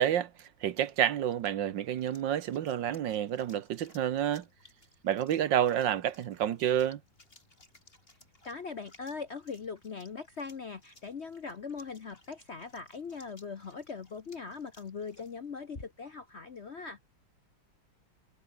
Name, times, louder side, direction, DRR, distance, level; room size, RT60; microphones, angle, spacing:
voice 1, 0.0-4.4 5.0-7.0, right 10 dB, 70° right, 1.6 m, -29 dB
sound 1, 0.7-16.2, left 2 dB, 25° left, 4.7 m, -59 dB
voice 2, 8.4-17.1, left 5 dB, 45° left, 0.9 m, -41 dB
omnidirectional pair, 2.2 m